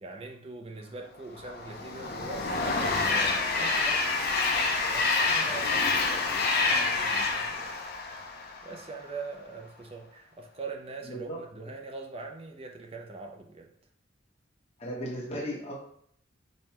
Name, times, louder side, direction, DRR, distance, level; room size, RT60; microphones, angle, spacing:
voice 1, 0.0-4.2 4.8-7.7 8.6-13.7, right 3 dB, 30° right, 2 dB, 0.5 m, -42 dB
Train, 1.4-8.8, left 3 dB, 50° left, 0.5 m, -27 dB
voice 2, 11.1-11.4 14.8-15.8, equal, 30° left, -5 dB, 1.1 m, -35 dB
5.3 x 2.2 x 2.9 m, 0.65 s
head